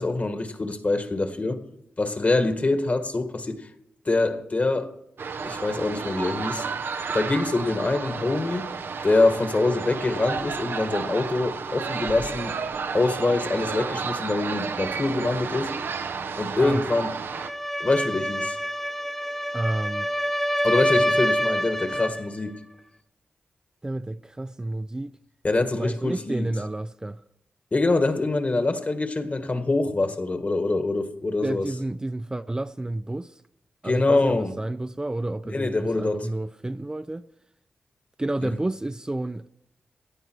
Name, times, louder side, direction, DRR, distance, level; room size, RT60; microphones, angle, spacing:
voice 1, 0.0-1.7 2.0-3.7 4.0-4.9 5.4-6.6 7.1-8.7 9.0-12.6 12.9-15.7 16.4-17.1 17.8-18.6 20.6-22.6 25.4-26.5 27.7-31.6 33.8-34.5 35.4-36.3 38.4-38.5, left 2 dB, 40° left, 1.7 m, -24 dB
sound 1, 5.2-17.5, right 5 dB, 80° right, 0.7 m, -32 dB
sound 2, 17.3-22.2, equal, 10° left, 1.3 m, -26 dB
voice 2, 19.5-20.1 23.8-25.1 25.7-27.2 31.4-33.4 33.8-37.3 38.2-39.5, right 2 dB, 20° right, 0.4 m, -30 dB
17.5 x 10.5 x 4.7 m
cardioid pair, 65°, 4 cm